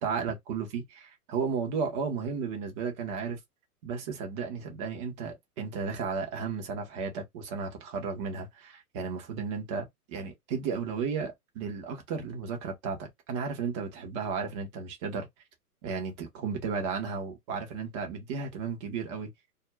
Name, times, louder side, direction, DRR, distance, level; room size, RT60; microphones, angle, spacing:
voice 1, 0.0-3.4 3.8-15.3 15.8-19.3, right 5 dB, 20° right, 0.5 m, -34 dB
2.3 x 2.0 x 2.9 m
hypercardioid pair, 130°, 45 cm